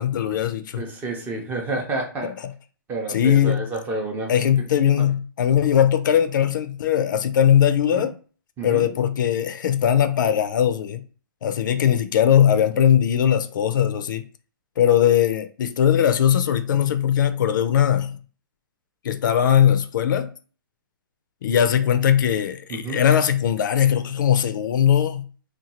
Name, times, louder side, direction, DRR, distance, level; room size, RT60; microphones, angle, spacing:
voice 1, 0.0-0.8 2.2-2.5 3.1-3.6 4.3-8.1 8.6-11.0 11.4-14.3 14.8-18.2 19.0-20.3 21.4-25.3, left 9 dB, 60° left, 0.4 m, -20 dB
voice 2, 0.8-2.3 2.9-4.3 7.9-8.0 8.6-8.9 22.7-23.0, right 2 dB, 15° right, 0.6 m, -29 dB
2.8 x 2.2 x 2.9 m
hypercardioid pair, 145°, 12 cm